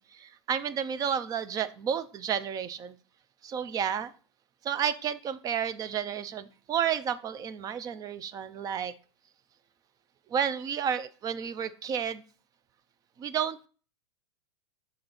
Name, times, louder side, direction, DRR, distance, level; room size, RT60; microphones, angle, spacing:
voice 1, 0.0-2.9 3.4-4.1 4.6-8.9 10.3-12.2 13.2-13.7, right 8 dB, 25° right, 15 dB, 0.4 m, -31 dB
6.5 x 3.9 x 3.9 m, 0.38 s
hypercardioid pair, 110°, 14 cm